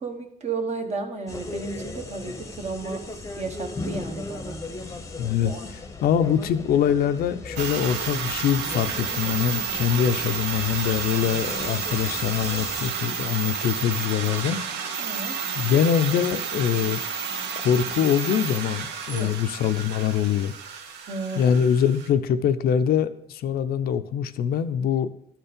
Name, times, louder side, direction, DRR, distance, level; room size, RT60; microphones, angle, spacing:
voice 1, 0.0-4.6 5.4-5.6 15.0-15.4 19.1-19.4 21.1-21.6, right 4 dB, 40° right, 4 dB, 1.3 m, -33 dB
sound 1, 1.3-12.9, left 2 dB, 20° left, 0.9 m, -37 dB
voice 2, 5.2-5.5 6.0-14.6 15.6-17.0 17.6-20.5 21.4-25.1, left 8 dB, 65° left, 10 dB, 0.6 m, -23 dB
sound 2, 7.6-22.1, right 6 dB, 80° right, 1.0 m, -31 dB
11.5 x 4.5 x 5.1 m, 0.72 s
cardioid pair, 110°, 17 cm